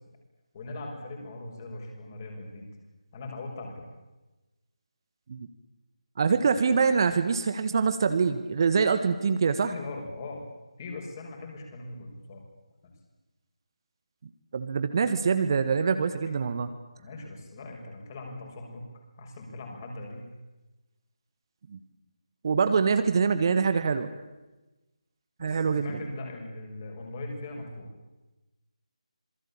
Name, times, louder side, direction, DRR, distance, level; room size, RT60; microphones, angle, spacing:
voice 1, 0.5-2.7 3.1-3.9 9.6-10.4 10.8-12.4 12.8-12.9 17.0-18.9 19.2-20.2 25.4-27.9, left 2 dB, 30° left, 1 dB, 6.7 m, -40 dB
voice 2, 6.2-9.7 14.5-16.7 21.7-21.8 22.4-24.1 25.4-26.0, right 5 dB, 35° right, 9 dB, 1.6 m, -24 dB
26.5 x 23.0 x 8.8 m, 1.1 s
figure-of-eight pair, 155°, 4 cm